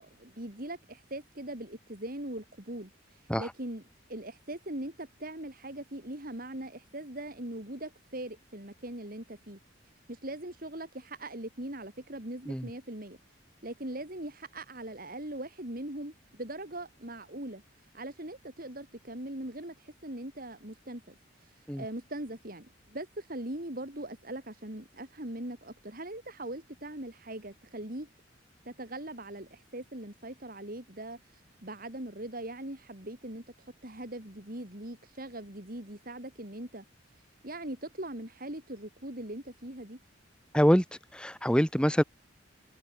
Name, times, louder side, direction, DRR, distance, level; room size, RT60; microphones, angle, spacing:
voice 1, 0.0-3.8 4.1-9.6 10.1-13.2 13.6-17.6 17.9-28.1 28.7-36.8 37.4-40.0, right 1 dB, 45° right, 3.7 m, -41 dB
voice 2, 40.5-40.8 41.1-42.0, equal, 5° left, 2.3 m, -24 dB
head